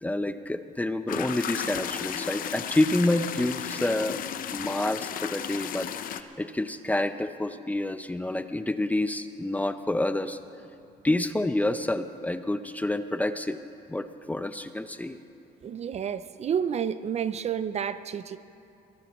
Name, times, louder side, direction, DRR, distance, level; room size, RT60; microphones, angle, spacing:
voice 1, 0.0-4.2 4.5-10.4 11.0-13.6 13.9-15.2, left 1 dB, 10° left, 0.5 m, -28 dB
sound 1, 1.1-6.2, left 9 dB, 55° left, 0.7 m, -34 dB
voice 2, 15.6-18.4, right 8 dB, 40° right, 0.5 m, -30 dB
22.5 x 18.0 x 3.1 m
cardioid pair, 110°, 17 cm